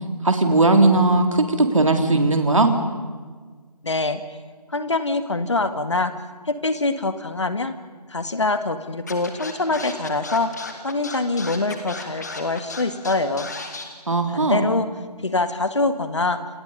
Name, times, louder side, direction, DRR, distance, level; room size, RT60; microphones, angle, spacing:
voice 1, 0.2-2.7 14.1-14.6, right 2 dB, 50° right, 5 dB, 3.4 m, -18 dB
voice 2, 3.8-4.2 4.7-6.1 6.5-7.7 8.1-10.5 10.8-13.5 14.3-14.9 15.2-16.4, left 3 dB, 45° left, 10 dB, 2.1 m, -24 dB
Scratching (performance technique), 9.1-13.8, left 3 dB, 25° left, 2.4 m, -34 dB
28.5 x 28.5 x 5.4 m, 1.5 s
figure-of-eight pair, 175°, 21 cm